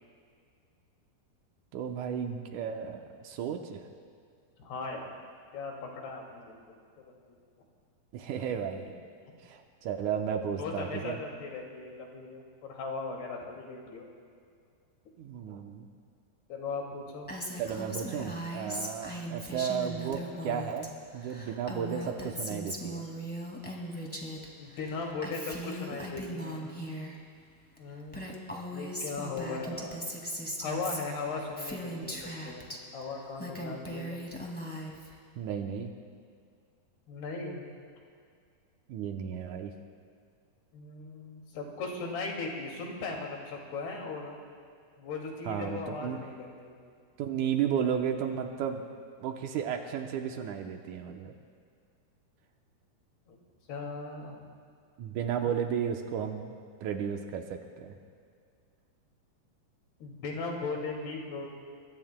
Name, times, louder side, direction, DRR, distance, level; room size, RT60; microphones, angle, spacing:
voice 1, 1.7-3.9 8.1-8.9 9.4-11.2 15.2-15.9 17.6-23.1 35.4-35.9 38.9-39.7 45.4-46.2 47.2-48.8 49.2-51.3 55.0-58.0, right 8 dB, 75° right, 4 dB, 1.8 m, -33 dB
voice 2, 4.6-5.2 5.5-7.1 9.3-9.4 10.6-14.1 16.5-17.3 24.6-26.7 27.8-28.2 28.7-30.0 30.6-34.2 37.1-37.6 40.7-44.4 45.0-46.8 53.3-53.4 53.7-54.4 55.4-55.5 60.0-61.5, left 3 dB, 80° left, 0 dB, 4.4 m, -38 dB
Female speech woman speaking, 17.3-20.9 21.1-24.5 24.7-27.1 27.8-27.9 28.1-32.8 33.2-35.1, equal, 5° left, 0.7 m, -39 dB
28.5 x 22.5 x 2.2 m, 2.2 s
omnidirectional pair, 4.5 m